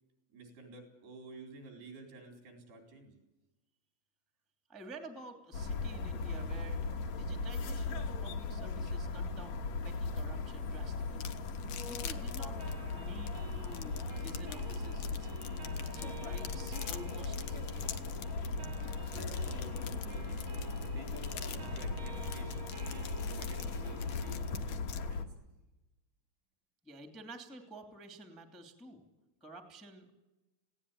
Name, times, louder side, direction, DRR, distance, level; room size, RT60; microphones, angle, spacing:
voice 1, 0.3-3.1 19.1-20.4 20.9-25.3, right 2 dB, 70° right, 4 dB, 6.3 m, -51 dB
voice 2, 4.7-6.8 7.1-9.6 9.8-11.4 11.9-15.6 15.9-18.0 26.8-29.0 29.4-30.1, right 1 dB, ahead, 6 dB, 1.6 m, -51 dB
sound 1, 5.5-25.2, left 3 dB, 60° left, 2.1 m, -38 dB
sound 2, 11.2-25.0, left 11 dB, 75° left, 2.0 m, -46 dB
sound 3, 12.6-24.6, right 4 dB, 45° right, 1.6 m, -51 dB
20.0 x 17.0 x 9.9 m, 1.0 s
omnidirectional pair, 4.9 m